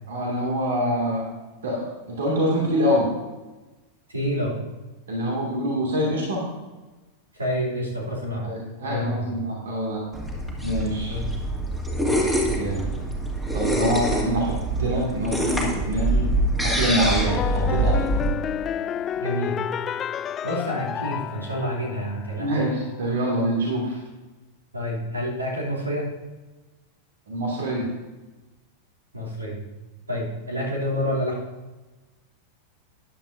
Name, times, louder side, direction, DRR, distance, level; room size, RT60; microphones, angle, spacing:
voice 1, 0.1-1.2 1.6-3.1 5.1-6.4 8.4-10.0 10.6-11.2 12.5-12.9 13.5-16.3 16.6-18.1 22.4-24.0 27.3-27.9, equal, 60° right, -2 dB, 2.3 m, -25 dB
voice 2, 4.1-4.6 7.3-8.4 8.8-9.3 11.1-11.2 12.0-12.3 19.2-19.6 20.4-22.5 24.7-26.1 29.1-29.6 30.1-31.4, equal, 80° right, -4 dB, 2.9 m, -28 dB
sound 1, 10.1-18.3, right 1 dB, 10° right, 2.3 m, -25 dB
sound 2, 17.3-22.4, left 9 dB, 25° left, 0.3 m, -30 dB
14.0 x 10.5 x 2.7 m, 1.1 s
figure-of-eight pair, 90°, 0 cm